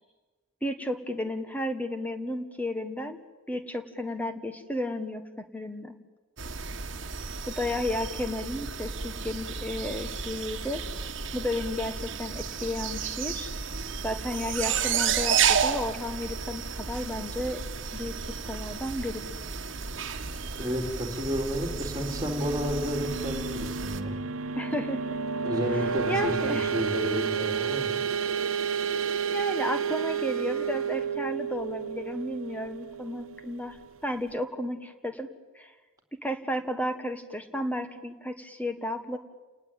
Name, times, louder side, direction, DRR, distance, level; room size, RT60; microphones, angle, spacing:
voice 1, 0.6-3.2 3.5-5.9 7.5-10.8 11.3-13.5 14.0-17.6 17.9-19.3 24.6-25.2 26.1-26.7 29.3-35.3 35.5-35.7 36.2-39.2, left 1 dB, 5° left, 8 dB, 1.4 m, -33 dB
sound 1, 6.4-24.0, right 6 dB, 60° right, 1.5 m, -32 dB
voice 2, 20.6-24.2 25.4-27.9, equal, 15° right, 1 dB, 3.6 m, -31 dB
sound 2, 21.4-33.9, right 6 dB, 80° right, 1.3 m, -31 dB
29.5 x 19.0 x 9.1 m, 1.3 s
head